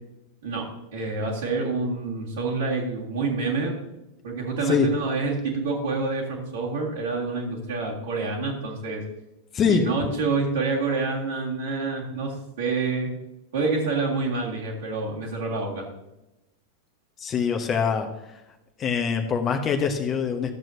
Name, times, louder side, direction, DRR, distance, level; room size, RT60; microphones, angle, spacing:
voice 1, 0.4-3.8 4.2-9.0 9.7-13.1 13.5-15.9, right 3 dB, 60° right, -6 dB, 2.0 m, -27 dB
voice 2, 17.2-18.4 18.8-20.5, left 6 dB, 25° left, 5 dB, 0.9 m, -24 dB
13.5 x 7.5 x 2.8 m, 0.94 s
figure-of-eight pair, 90°, 0 cm